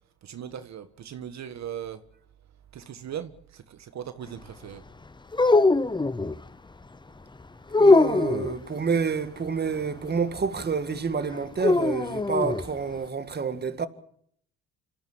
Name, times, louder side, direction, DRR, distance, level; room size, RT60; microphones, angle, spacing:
voice 1, 0.2-2.0 2.7-4.8, right 9 dB, 65° right, 1.6 m, -38 dB
sound 1, 5.3-6.4 7.7-8.6 11.6-12.6, left 3 dB, 15° left, 0.9 m, -21 dB
voice 2, 7.8-13.9, right 5 dB, 35° right, 2.0 m, -28 dB
26.5 x 15.0 x 8.7 m
cardioid pair, 90°, 30 cm